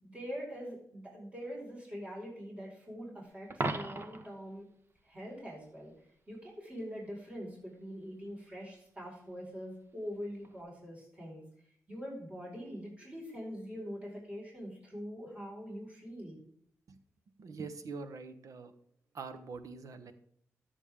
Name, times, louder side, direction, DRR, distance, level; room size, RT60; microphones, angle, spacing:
voice 1, 0.0-4.6 5.0-5.9 6.3-11.4 11.9-16.4, equal, 20° right, -4 dB, 5.0 m, -43 dB
Coin (dropping), 3.5-4.4 10.4-10.6, right 2 dB, 40° right, 1.0 m, -36 dB
voice 2, 17.4-18.7 19.1-20.1, right 4 dB, 70° right, 10 dB, 1.0 m, -44 dB
13.5 x 7.2 x 3.7 m, 0.66 s
cardioid pair, 70°, 6 cm